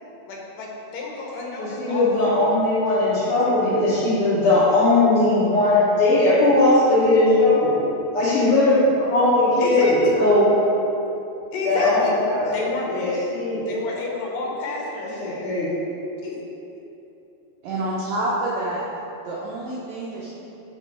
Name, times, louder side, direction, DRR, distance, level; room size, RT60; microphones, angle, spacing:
voice 1, 0.3-2.4 3.3-3.9 9.6-10.1 11.5-12.1 12.5-13.2 13.6-15.2 16.2-16.4, left 3 dB, 75° left, -2 dB, 2.6 m, -31 dB
voice 2, 1.6-7.8 8.1-10.5 11.6-13.7 15.0-15.8, left 2 dB, 60° left, -10 dB, 1.6 m, -19 dB
voice 3, 17.6-18.8 19.2-20.3, right 1 dB, 80° right, -6 dB, 1.6 m, -27 dB
5.9 x 5.3 x 4.5 m, 2.9 s
omnidirectional pair, 4.0 m